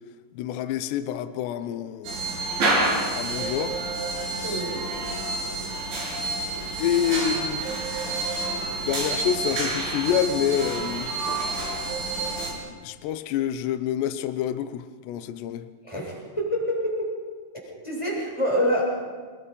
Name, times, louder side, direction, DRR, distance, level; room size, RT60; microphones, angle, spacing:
voice 1, 0.3-2.2 3.2-3.8 4.3-4.7 6.8-7.7 8.8-11.1 12.5-15.7, left 9 dB, 75° left, 2.7 m, -27 dB
sound 1, 2.0-12.5, right 2 dB, 65° right, 8.6 m, -28 dB
voice 2, 4.4-4.8 15.8-17.1 17.6-18.8, equal, 5° left, 6.3 m, -27 dB
29.0 x 22.5 x 5.4 m
omnidirectional pair, 5.9 m